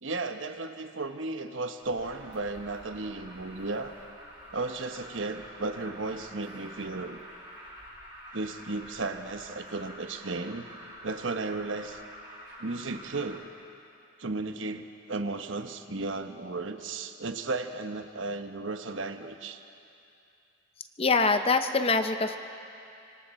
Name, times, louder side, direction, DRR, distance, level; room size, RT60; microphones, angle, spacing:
voice 1, 0.0-3.9 4.5-7.2 8.3-10.7 11.0-12.0 12.6-13.5 14.2-19.6, right 3 dB, 75° right, 7 dB, 1.1 m, -34 dB
Alarm, 1.8-13.4, equal, 25° right, 5.7 m, -48 dB
voice 2, 21.0-22.4, left 4 dB, 30° left, 8 dB, 0.8 m, -24 dB
25.5 x 25.0 x 4.3 m, 2.6 s
head